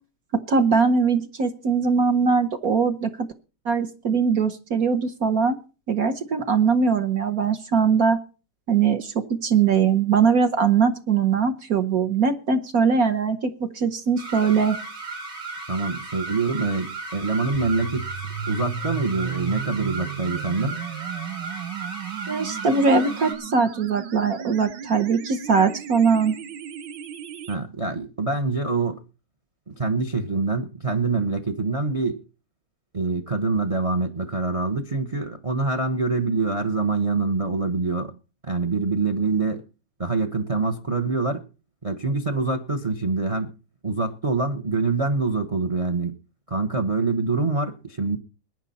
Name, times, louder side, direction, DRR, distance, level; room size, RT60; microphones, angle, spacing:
voice 1, 0.5-3.3 3.6-5.6 5.9-8.2 8.7-14.8 22.3-26.3, right 5 dB, 50° right, 1.4 m, -21 dB
sound 1, 14.2-23.3, right 3 dB, 90° right, 4.5 m, -35 dB
voice 2, 15.7-18.1 18.5-20.8 27.5-29.0 29.7-32.2 32.9-38.1 38.4-39.6 40.0-41.4 41.8-43.5 43.8-46.2 46.5-48.2, right 3 dB, 35° right, 0.5 m, -25 dB
sound 2, 17.5-27.5, right 7 dB, 70° right, 1.7 m, -35 dB
21.5 x 9.9 x 4.2 m
omnidirectional pair, 2.1 m